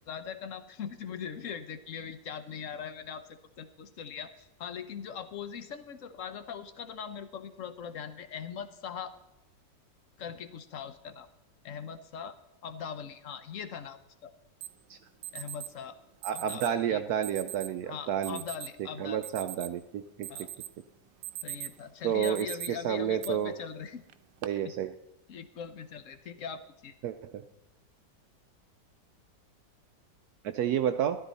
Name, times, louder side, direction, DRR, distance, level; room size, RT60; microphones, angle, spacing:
voice 1, 0.1-9.1 10.2-11.3 11.6-12.3 12.6-14.3 15.3-16.0 16.3-17.0 17.8-19.7 20.3-20.5 21.4-24.0 24.6-24.7 25.3-26.9, left 7 dB, 55° left, 11 dB, 1.0 m, -41 dB
Alarm, 14.6-14.7 15.2-15.7 16.2-16.7 17.2-17.7 18.2-18.7 19.1-19.8 20.2-20.7 21.1-21.8 22.2-22.7 23.2-23.3 24.1-24.5, right 13 dB, 90° right, 1.4 m, -40 dB
voice 2, 16.2-18.4 19.0-20.3 22.0-23.5 24.4-24.9 27.0-27.4 30.4-31.2, right 9 dB, 70° right, 9 dB, 1.0 m, -30 dB
13.5 x 12.0 x 4.1 m, 0.91 s
omnidirectional pair, 2.0 m